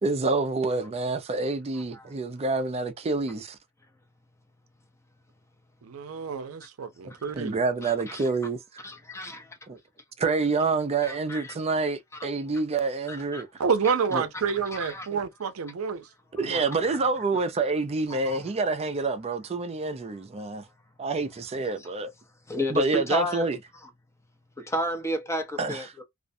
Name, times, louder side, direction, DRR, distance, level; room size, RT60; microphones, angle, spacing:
voice 1, 0.0-3.6 7.0-8.9 9.7-9.8 10.2-13.5 14.1-14.2 15.1-15.2 16.3-20.6 21.0-22.1 22.7-23.6 25.6-25.9, right 3 dB, 30° right, 0.4 m, -27 dB
voice 2, 5.8-7.6 13.6-16.1 16.4-16.6, right 6 dB, 90° right, 0.5 m, -28 dB
voice 3, 7.8-8.2 8.8-9.6 11.0-11.5 13.1-13.4 14.7-15.1 18.1-18.4 22.5-23.4 24.6-26.0, left 1 dB, 15° left, 0.6 m, -32 dB
2.4 x 2.1 x 2.5 m
head